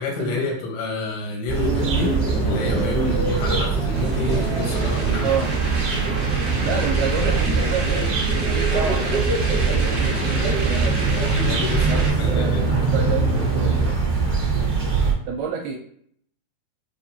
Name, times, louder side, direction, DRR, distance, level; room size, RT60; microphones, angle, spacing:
voice 1, 0.0-2.1 2.4-5.4 11.2-12.7, left 3 dB, 85° left, 0 dB, 3.2 m, -29 dB
sound 1, 1.5-13.9, right 1 dB, 60° left, 1.0 m, -29 dB
sound 2, 1.5-15.1, right 4 dB, 40° right, 1.4 m, -23 dB
sound 3, 3.9-12.1, right 2 dB, 60° right, 1.3 m, -32 dB
voice 2, 6.6-8.1 8.4-9.4 9.7-11.0 11.8-13.8 15.3-15.8, right 6 dB, 80° right, 0 dB, 2.5 m, -29 dB
7.2 x 2.5 x 2.7 m, 0.65 s
omnidirectional pair, 4.6 m